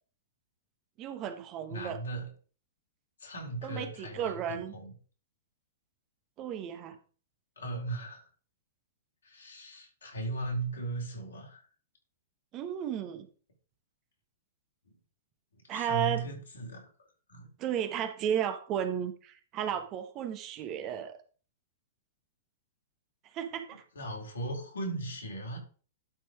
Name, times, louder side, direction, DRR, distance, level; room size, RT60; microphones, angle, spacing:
voice 1, 1.0-2.0 3.6-4.7 6.4-7.0 12.5-13.3 15.7-16.2 17.6-21.2 23.3-23.8, right 9 dB, 35° right, 9 dB, 1.3 m, -34 dB
voice 2, 1.7-2.3 3.2-4.9 7.6-8.2 9.2-11.6 14.9-15.0 15.5-16.9 17.3-17.5 23.9-25.6, right 2 dB, 75° left, 0 dB, 3.9 m, -37 dB
11.5 x 4.5 x 4.9 m, 0.40 s
figure-of-eight pair, 105°, 0 cm